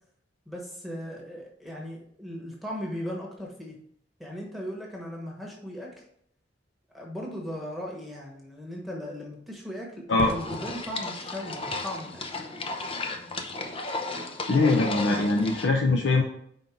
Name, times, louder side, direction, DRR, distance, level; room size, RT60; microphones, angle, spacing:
voice 1, 0.5-3.7 4.2-6.0 6.9-12.4, equal, ahead, -2 dB, 1.2 m, -37 dB
sound 1, 10.2-15.7, left 2 dB, 30° left, 0.7 m, -34 dB
voice 2, 14.5-16.2, left 3 dB, 75° left, 2 dB, 0.7 m, -22 dB
5.3 x 3.9 x 5.9 m, 0.69 s
head